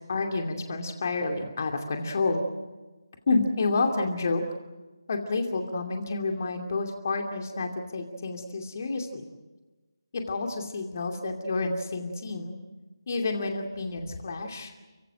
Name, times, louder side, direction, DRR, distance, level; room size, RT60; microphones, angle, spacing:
voice 1, 0.0-2.4 3.3-4.4 5.1-9.3 10.1-12.6 13.1-14.7, left 3 dB, 40° left, 4 dB, 2.5 m, -29 dB
29.0 x 17.0 x 8.9 m, 1.2 s
figure-of-eight pair, 155°, 2 cm